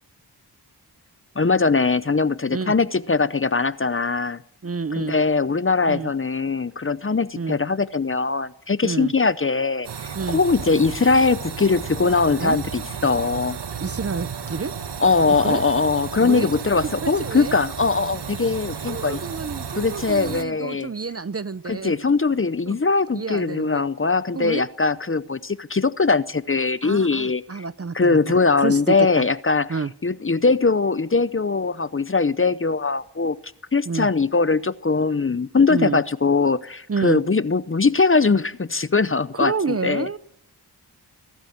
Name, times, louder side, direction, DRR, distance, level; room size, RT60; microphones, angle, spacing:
voice 1, 1.4-4.4 4.9-13.6 15.0-19.2 19.8-20.9 21.7-27.6 27.9-29.7 30.0-33.4 33.7-40.1, left 4 dB, 30° left, 16 dB, 0.7 m, -21 dB
voice 2, 4.6-5.2 5.9-6.1 7.4-7.6 8.8-9.1 10.2-10.4 12.4-12.6 13.8-14.7 15.3-15.7 16.2-16.5 17.0-17.6 18.9-21.9 22.7-22.8 23.1-23.8 24.3-24.7 26.8-29.2 29.7-29.9 33.9-34.1 35.7-36.0 36.9-37.2 39.4-40.2, right 4 dB, 35° right, 16 dB, 0.7 m, -29 dB
sound 1, 9.8-20.4, right 7 dB, 75° right, 1.2 m, -33 dB
22.5 x 13.0 x 9.3 m, 0.78 s
wide cardioid pair, 75°, 40 cm